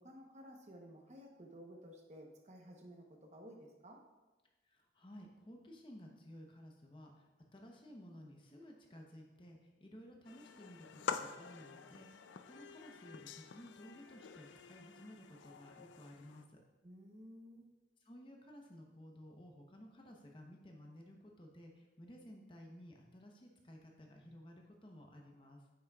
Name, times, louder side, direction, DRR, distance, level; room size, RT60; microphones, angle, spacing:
voice 1, 0.0-4.0 16.8-17.7, equal, 40° right, 1 dB, 0.9 m, -54 dB
voice 2, 4.6-16.6 18.0-25.6, equal, 30° left, 1 dB, 0.8 m, -55 dB
sound 1, 10.2-16.4, left 6 dB, 80° left, 0.4 m, -47 dB
8.7 x 6.2 x 2.3 m, 1.2 s
head